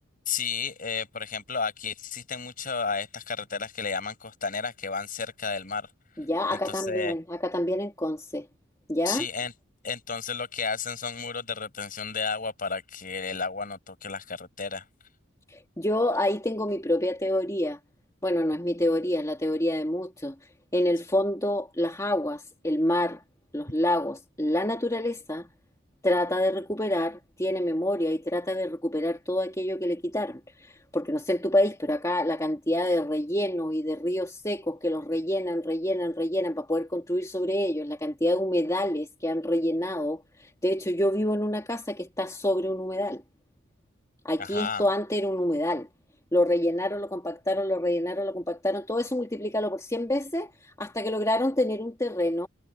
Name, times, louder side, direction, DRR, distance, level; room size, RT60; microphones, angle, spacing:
voice 1, 0.3-5.9 6.5-7.1 9.0-9.5 9.8-14.8 44.4-44.8, left 5 dB, 40° left, 7.2 m, -32 dB
voice 2, 6.2-8.5 8.9-9.3 15.5-17.8 18.2-20.3 20.7-23.2 23.5-25.5 26.0-43.2 44.2-45.9 46.3-52.5, left 1 dB, 15° left, 2.4 m, -27 dB
head